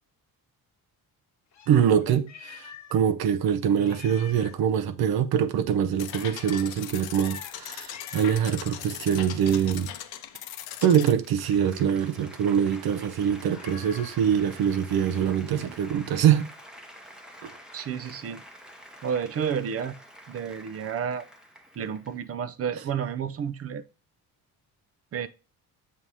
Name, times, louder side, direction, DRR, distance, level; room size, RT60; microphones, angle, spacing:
Meow, 1.5-3.0 3.3-3.4 3.8-4.6 6.1-6.7 7.2-7.6 7.9-8.5 11.4-12.0 13.6-14.3, left 7 dB, 50° left, 1.0 m, -46 dB
voice 1, 1.7-9.9 10.8-16.5 17.4-17.5, right 8 dB, 80° right, 0.7 m, -24 dB
sound 1, 6.0-11.1, left 11 dB, 80° left, 0.7 m, -39 dB
Applause, 10.7-22.3, equal, ahead, 0.8 m, -48 dB
voice 2, 17.7-18.4 19.0-20.0 20.3-21.3 21.8-23.8 25.1-25.3, right 7 dB, 40° right, 0.5 m, -31 dB
7.5 x 2.8 x 4.7 m
cardioid pair, 120°, 37 cm